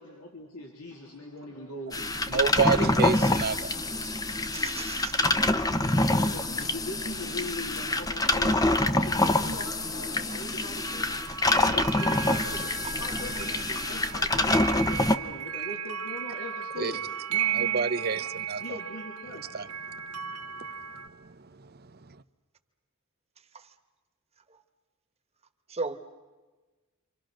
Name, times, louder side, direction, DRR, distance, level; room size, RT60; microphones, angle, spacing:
voice 1, 0.0-2.7 5.9-17.9 18.6-19.4, left 2 dB, 80° left, 3.3 m, -41 dB
sound 1, 1.9-15.2, left 2 dB, 15° left, 0.8 m, -26 dB
voice 2, 2.3-4.1 16.8-16.9 17.5-18.6 19.5-19.7 21.2-21.3, right 4 dB, 45° right, 0.8 m, -28 dB
voice 3, 4.5-5.2 12.8-12.9 23.5-23.7 24.5-24.6 25.7-26.0, right 4 dB, 30° right, 1.4 m, -36 dB
sound 2, 10.8-21.1, right 9 dB, 85° right, 1.8 m, -35 dB
29.0 x 26.0 x 6.4 m
head